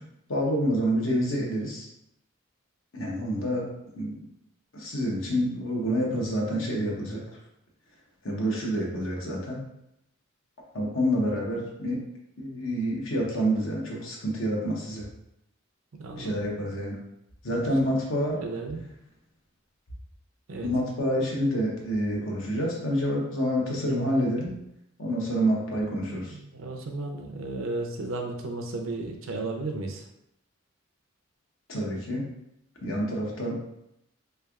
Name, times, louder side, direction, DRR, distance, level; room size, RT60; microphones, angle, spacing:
voice 1, 0.3-1.9 2.9-3.7 4.0-4.1 4.7-7.2 8.2-9.6 10.7-12.0 12.4-15.1 16.1-17.0 17.4-18.4 20.6-24.5 25.0-26.4 31.7-32.2 32.8-33.5, equal, 70° left, -2 dB, 0.9 m, -27 dB
voice 2, 15.9-16.7 17.5-17.6 18.3-18.9 20.5-20.7 26.3-30.0, right 2 dB, 80° right, 3 dB, 0.6 m, -34 dB
3.4 x 3.3 x 2.4 m, 0.82 s
head